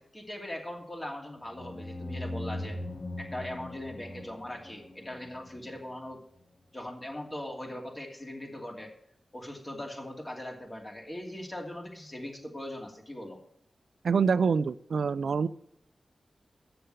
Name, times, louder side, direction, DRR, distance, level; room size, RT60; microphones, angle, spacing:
voice 1, 0.0-2.8 3.2-6.2 6.7-8.9 9.3-13.4, left 1 dB, 30° left, 1 dB, 2.7 m, -40 dB
sound 1, 1.5-6.1, left 1 dB, 55° left, 1.4 m, -40 dB
voice 2, 14.0-15.5, right 5 dB, 80° right, 15 dB, 0.3 m, -26 dB
7.9 x 6.8 x 7.5 m, 0.76 s
cardioid pair, 45°, 0 cm